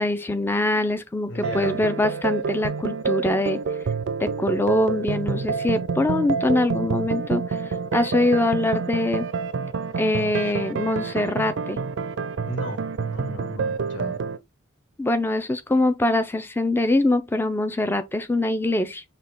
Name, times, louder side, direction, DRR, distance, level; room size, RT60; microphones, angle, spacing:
voice 1, 0.0-3.6 4.2-7.6 7.9-9.3 10.0-11.8 15.0-19.0, left 2 dB, 10° left, 0.4 m, -23 dB
voice 2, 1.3-1.9 12.5-14.2, equal, 65° left, 1.5 m, -35 dB
sound 1, 1.4-14.4, right 5 dB, 65° right, 0.4 m, -28 dB
5.8 x 2.2 x 3.4 m
head